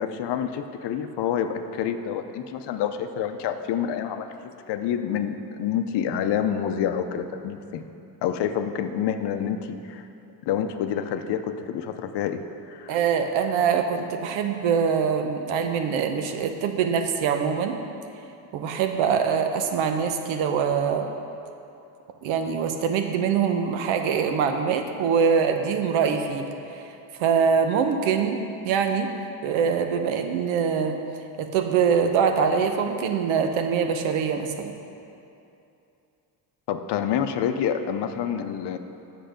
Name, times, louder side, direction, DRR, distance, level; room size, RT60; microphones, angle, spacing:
voice 1, 0.0-7.8 8.2-10.1 10.5-12.4 12.7-13.0 36.7-38.8, left 8 dB, 60° left, 8 dB, 0.7 m, -28 dB
voice 2, 12.9-17.8 18.5-21.1 22.2-26.8 27.2-29.1 29.4-31.0 31.4-34.7, right 6 dB, 80° right, 6 dB, 0.9 m, -24 dB
8.0 x 6.6 x 5.1 m, 2.7 s
cardioid pair, 110°, 47 cm